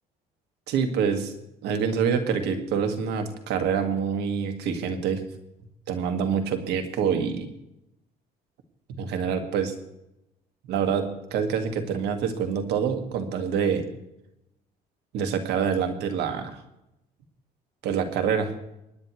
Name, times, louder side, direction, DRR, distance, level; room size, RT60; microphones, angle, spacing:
voice 1, 0.7-1.3 1.6-5.2 5.9-7.5 8.9-9.7 10.7-13.8 15.1-16.6 17.8-18.5, right 7 dB, 85° right, 6 dB, 1.9 m, -26 dB
25.0 x 10.0 x 3.2 m, 0.87 s
cardioid pair, 110°, 17 cm